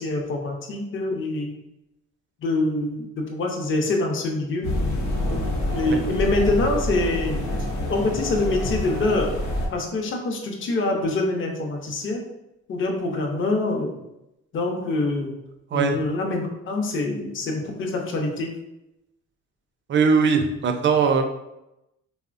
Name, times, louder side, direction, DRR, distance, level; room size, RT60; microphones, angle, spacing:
voice 1, 0.0-1.5 2.4-4.7 5.7-7.5 7.9-9.3 9.7-12.2 12.7-14.0 14.5-15.3 15.7-18.5, left 2 dB, 40° left, 1 dB, 0.6 m, -25 dB
sound 1, 4.6-9.7, left 1 dB, 85° left, 0.7 m, -27 dB
voice 2, 15.7-16.0 19.9-21.2, right 5 dB, 40° right, 6 dB, 0.4 m, -20 dB
3.2 x 2.0 x 2.4 m, 0.90 s
cardioid pair, 90°, 30 cm